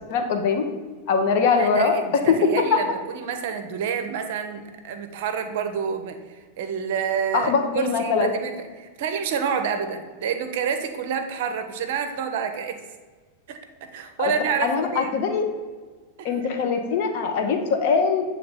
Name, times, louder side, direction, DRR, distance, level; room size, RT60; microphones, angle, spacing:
voice 1, 0.1-0.6 1.1-2.0 2.3-2.4 2.7-2.8 7.3-8.3 14.2-14.3 14.6-15.5 16.2-18.2, left 5 dB, 50° left, 4 dB, 0.8 m, -22 dB
voice 2, 1.6-12.8 13.5-15.1 16.2-16.3, right 6 dB, 50° right, 7 dB, 0.6 m, -28 dB
7.7 x 3.3 x 3.9 m, 1.4 s
figure-of-eight pair, 90°, 0 cm